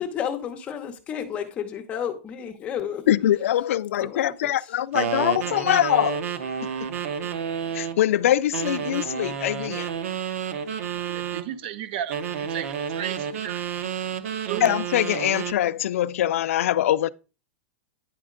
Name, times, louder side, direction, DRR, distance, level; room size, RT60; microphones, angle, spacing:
voice 1, 0.0-3.0 4.0-4.8 5.2-5.6, left 8 dB, 15° left, 0.8 m, -32 dB
voice 2, 3.1-6.2 6.8-6.9 7.7-9.9 14.6-17.1, left 12 dB, 90° left, 0.4 m, -23 dB
sound 1, 4.9-8.0 8.5-11.5 12.1-15.6, right 8 dB, 85° right, 0.9 m, -30 dB
voice 3, 11.0-13.6 14.4-14.7, right 10 dB, 50° right, 0.6 m, -34 dB
9.8 x 4.3 x 3.7 m
supercardioid pair, 175°, 7 cm